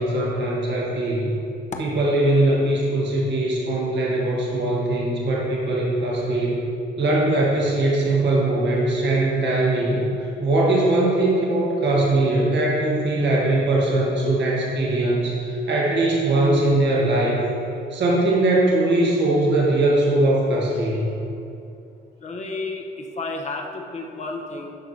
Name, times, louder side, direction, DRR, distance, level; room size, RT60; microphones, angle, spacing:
voice 1, 0.0-1.3 1.8-6.6 7.0-10.0 10.4-17.5 17.9-21.0, right 2 dB, 65° right, -4 dB, 1.6 m, -21 dB
voice 2, 22.2-22.8 23.2-24.7, left 3 dB, 35° left, 2 dB, 0.9 m, -31 dB
10.0 x 6.2 x 2.8 m, 2.6 s
cardioid pair, 90°, 20 cm